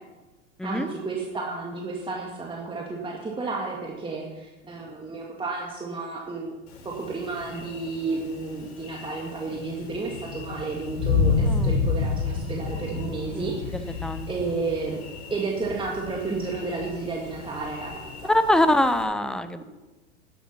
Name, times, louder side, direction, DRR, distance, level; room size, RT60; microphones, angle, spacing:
voice 1, 0.6-6.5 6.8-14.0 14.3-15.0 15.3-18.3, right 3 dB, 15° right, -2 dB, 2.1 m, -32 dB
Thunder, 6.7-19.0, left 4 dB, 60° left, 5.0 m, -31 dB
voice 2, 11.4-11.8 13.3-13.5 14.0-14.3 18.3-19.6, left 1 dB, ahead, 11 dB, 0.8 m, -23 dB
11.5 x 10.5 x 5.9 m, 1.1 s
hypercardioid pair, 95°, 37 cm